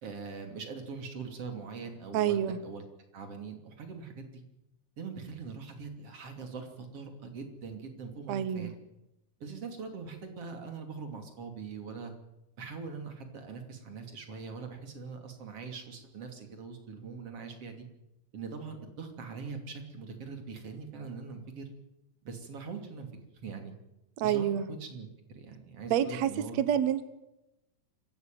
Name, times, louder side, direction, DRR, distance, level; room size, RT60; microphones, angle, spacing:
voice 1, 0.0-2.8 3.1-4.4 5.0-8.7 9.4-12.1 12.6-17.9 18.3-21.7 22.2-23.7 24.2-26.6, right 5 dB, 40° right, 5 dB, 3.5 m, -42 dB
voice 2, 2.1-2.6 8.3-8.7 24.2-24.7 25.9-26.3 26.6-27.1, right 10 dB, 70° right, 12 dB, 1.7 m, -28 dB
26.0 x 15.5 x 9.2 m, 0.95 s
omnidirectional pair, 4.5 m